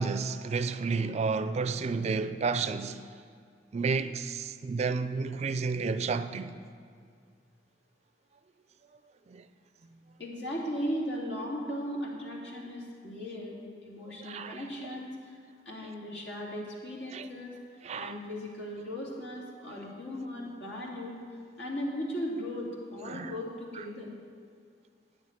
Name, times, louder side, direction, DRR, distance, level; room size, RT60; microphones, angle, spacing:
voice 1, 0.0-3.1 3.7-6.6 9.3-9.4 14.2-15.0 15.8-15.9 17.0-17.3 17.8-18.2 23.0-23.4 23.8-23.9, right 4 dB, 40° right, 0.4 m, -31 dB
voice 2, 10.2-15.4 15.7-21.2 21.6-24.1, equal, 75° left, 2.5 m, -37 dB
9.5 x 7.3 x 8.7 m
head